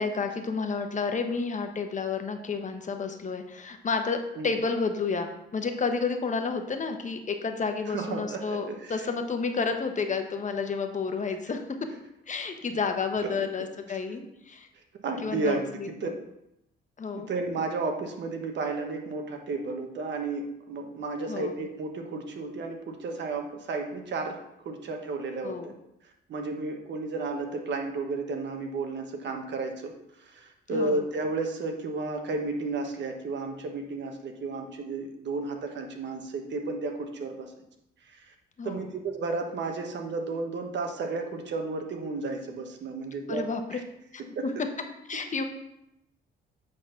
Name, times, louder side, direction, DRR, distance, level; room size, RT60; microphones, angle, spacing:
voice 1, 0.0-11.8 12.3-14.7 15.2-16.2 17.0-17.3 21.3-21.5 25.4-25.7 30.7-31.0 38.6-38.9 43.3-43.8 44.4-44.5 45.1-45.4, left 4 dB, 40° left, 6 dB, 1.0 m, -30 dB
voice 2, 7.9-9.1 13.2-13.3 13.9-14.0 15.0-16.1 17.2-25.7 26.3-37.5 38.1-38.3 38.6-43.4 43.7-43.8 44.4-44.5, right 3 dB, 65° right, 4 dB, 1.3 m, -33 dB
8.3 x 4.0 x 5.7 m, 0.84 s
cardioid pair, 90°, 20 cm